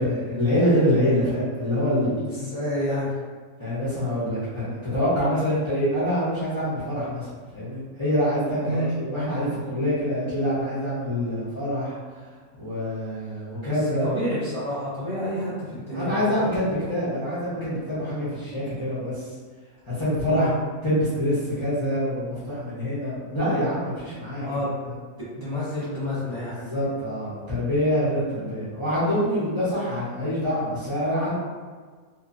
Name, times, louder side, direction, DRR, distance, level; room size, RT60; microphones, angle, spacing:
voice 1, 0.0-2.2 3.6-12.0 12.6-14.2 15.9-19.3 19.9-20.5 20.8-24.5 24.8-24.9 26.5-31.3, equal, 30° left, -13 dB, 0.7 m, -25 dB
voice 2, 2.2-3.1 8.6-8.9 13.7-13.8 14.0-16.6 20.2-20.5 24.4-24.8 25.4-26.6, equal, 30° right, -12 dB, 0.8 m, -29 dB
2.7 x 2.3 x 2.5 m, 1.5 s
omnidirectional pair, 1.4 m